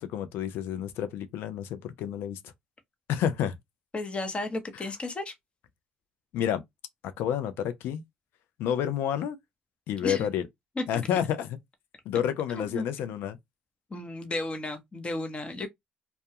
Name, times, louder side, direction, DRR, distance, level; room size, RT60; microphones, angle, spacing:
voice 1, 0.0-2.4 3.1-3.5 6.3-6.6 7.2-8.0 8.6-9.4 9.9-10.4 10.9-11.6 12.1-13.4, left 9 dB, 75° left, 0.5 m, -29 dB
voice 2, 3.9-5.3 10.0-10.3 10.8-10.9 12.5-12.8 13.9-15.7, left 2 dB, 30° left, 0.8 m, -33 dB
2.3 x 2.2 x 2.8 m
supercardioid pair, 65°, 4 cm